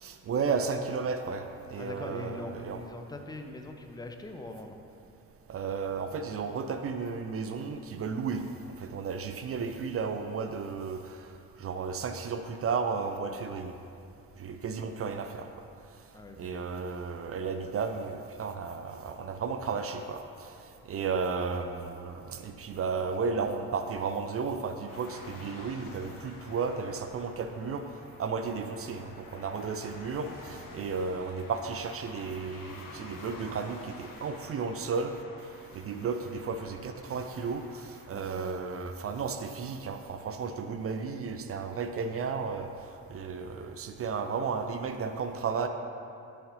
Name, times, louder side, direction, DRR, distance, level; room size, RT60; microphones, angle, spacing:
voice 1, 0.0-2.8 5.5-8.5 8.8-11.3 11.6-13.7 14.4-15.5 16.4-20.5 20.9-27.9 28.2-35.1 35.7-42.7 43.1-45.7, right 5 dB, 30° right, 7 dB, 0.6 m, -33 dB
voice 2, 1.8-4.8 16.1-16.8 38.1-38.7, left 2 dB, 10° left, 5 dB, 0.7 m, -42 dB
sound 1, 24.9-38.1, left 3 dB, 45° left, 1.1 m, -50 dB
11.5 x 8.2 x 2.7 m, 2.6 s
figure-of-eight pair, 45°, 45 cm